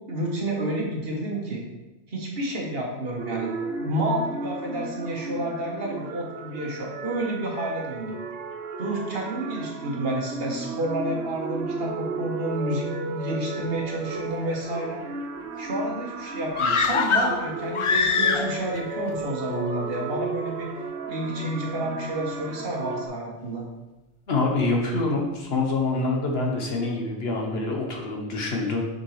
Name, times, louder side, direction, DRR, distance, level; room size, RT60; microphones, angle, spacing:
voice 1, 0.1-1.6 2.1-3.5 3.8-8.1 8.8-15.0 15.6-20.7 21.1-23.6, right 1 dB, 60° right, -1 dB, 1.5 m, -30 dB
sound 1, 3.2-23.1, right 4 dB, 85° right, 0.9 m, -34 dB
sound 2, 16.5-18.8 19.1-19.2, left 5 dB, 50° left, 0.3 m, -23 dB
voice 2, 24.3-28.9, left 3 dB, 65° left, 1 dB, 1.3 m, -26 dB
6.8 x 5.3 x 3.2 m, 1.1 s
omnidirectional pair, 1.1 m